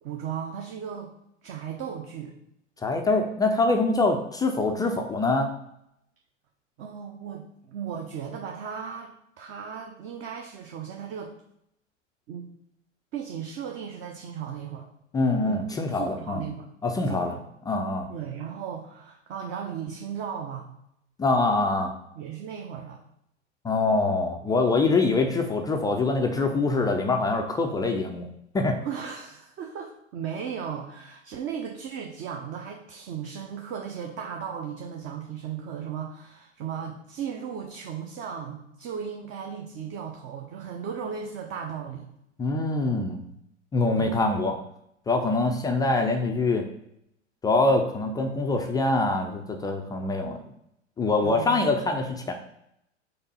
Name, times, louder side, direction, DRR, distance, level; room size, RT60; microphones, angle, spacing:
voice 1, 0.0-1.1 1.4-2.3 6.8-11.3 12.3-12.5 13.1-14.9 15.4-15.6 15.9-16.7 17.0-17.4 18.1-20.7 22.1-23.0 28.8-42.1 43.9-44.2 51.2-51.7, right 7 dB, 30° right, 2 dB, 0.8 m, -36 dB
voice 2, 2.8-5.5 15.1-16.4 16.8-17.3 17.7-18.1 21.2-21.9 23.6-28.3 28.5-28.8 42.4-43.2 43.7-44.6 45.1-46.6 47.4-50.4 51.0-52.3, left 3 dB, 10° left, 4 dB, 0.4 m, -24 dB
5.7 x 4.0 x 5.4 m, 0.77 s
figure-of-eight pair, 90°, 37 cm